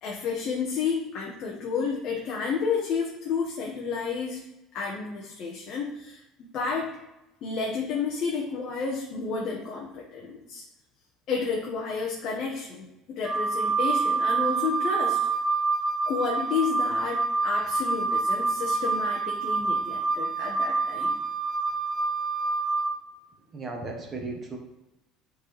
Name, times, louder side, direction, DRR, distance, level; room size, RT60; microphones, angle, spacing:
voice 1, 0.0-4.4 4.7-6.9 7.4-10.6 11.3-15.2 16.1-21.2, left 5 dB, 40° left, -2 dB, 1.1 m, -31 dB
Wind instrument woodwind instrument, 13.2-22.9, right 4 dB, ahead, 0.8 m, -27 dB
voice 2, 23.5-24.6, right 3 dB, 20° right, 1 dB, 1.2 m, -35 dB
9.5 x 4.0 x 3.3 m, 0.95 s
cardioid pair, 170°, 0 cm